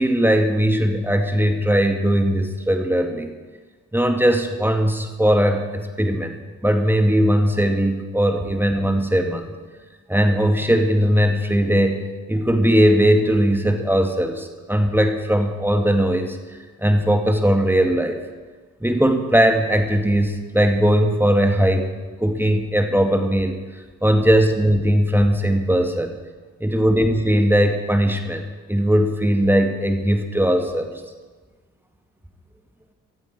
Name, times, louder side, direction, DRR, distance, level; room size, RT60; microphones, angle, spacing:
voice 1, 0.0-3.3 3.9-6.4 6.6-9.6 10.1-18.2 18.8-21.9 22.2-26.1 26.6-30.9, equal, 5° right, 4 dB, 2.3 m, -19 dB
19.0 x 14.0 x 4.7 m, 1.4 s
figure-of-eight pair, 45°, 37 cm